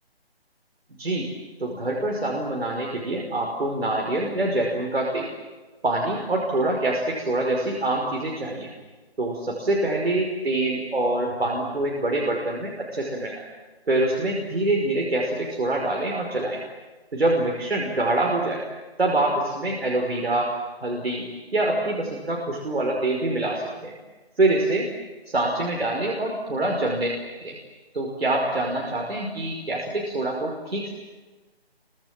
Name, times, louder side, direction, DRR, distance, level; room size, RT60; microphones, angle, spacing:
voice 1, 1.0-1.3 1.6-5.3 5.8-8.7 9.2-13.4 13.9-16.6 17.1-18.6 19.0-20.5 20.8-21.3 21.5-24.0 24.4-24.9 25.3-27.1 27.4-27.6 27.9-30.9, right 2 dB, 70° right, -1 dB, 5.5 m, -25 dB
27.0 x 25.0 x 7.7 m, 1.3 s
figure-of-eight pair, 165°, 31 cm